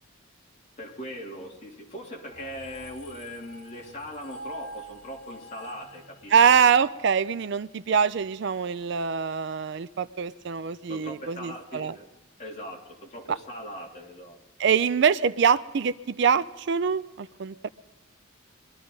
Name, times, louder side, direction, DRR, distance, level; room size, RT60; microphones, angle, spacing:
voice 1, 0.8-6.7 10.9-12.0 12.4-14.4, equal, 35° left, -2 dB, 3.0 m, -40 dB
sound 1, 2.3-7.7, right 1 dB, 65° left, 4.1 m, -45 dB
voice 2, 6.3-11.9 13.3-13.4 14.6-17.7, right 6 dB, 55° right, 15 dB, 0.4 m, -24 dB
22.5 x 13.0 x 3.9 m, 1.0 s
head